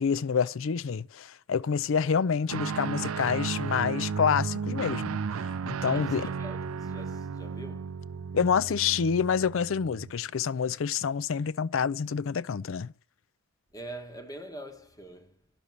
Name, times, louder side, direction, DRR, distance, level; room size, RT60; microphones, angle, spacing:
voice 1, 0.0-5.2 5.6-6.3 8.3-12.9, left 6 dB, 65° left, 0.4 m, -27 dB
Guitar, 2.5-10.2, right 5 dB, 85° right, 0.4 m, -34 dB
voice 2, 5.8-8.1 13.7-15.4, right 1 dB, 15° left, 1.1 m, -44 dB
10.5 x 6.7 x 7.0 m
head